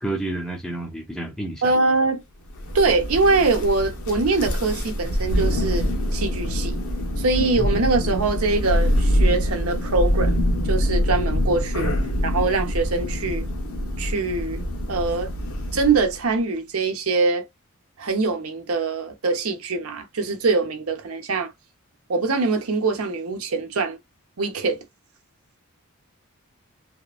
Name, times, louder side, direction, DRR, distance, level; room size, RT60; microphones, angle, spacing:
voice 1, 0.0-1.6, right 2 dB, ahead, 0.5 m, -29 dB
voice 2, 1.6-2.2 2.7-5.9 6.1-6.8 7.2-10.4 10.6-11.9 12.2-13.5 14.0-14.6 14.9-15.3 15.7-17.4 18.0-21.5 22.1-24.0 24.4-24.8, right 3 dB, 80° right, 0.7 m, -23 dB
Thunder, 2.5-16.2, equal, 80° left, 0.9 m, -24 dB
2.8 x 2.4 x 2.4 m
head